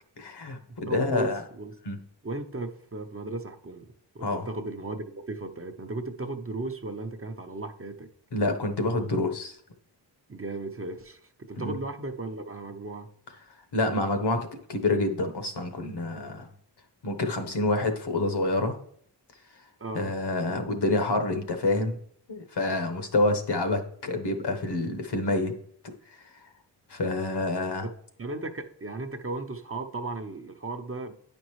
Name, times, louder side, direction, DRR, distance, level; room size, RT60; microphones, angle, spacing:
voice 1, 0.2-1.4 1.8-2.0 4.2-4.5 8.3-9.6 11.6-11.8 13.7-16.5 17.0-18.8 19.9-22.0 22.3-25.5 26.9-27.9, left 2 dB, 65° left, 6 dB, 1.2 m, -27 dB
voice 2, 0.9-1.7 2.2-8.1 10.3-13.1 19.8-20.1 27.8-31.1, right 2 dB, 30° right, 6 dB, 0.7 m, -36 dB
9.2 x 5.3 x 3.1 m, 0.63 s
wide cardioid pair, 80°, 43 cm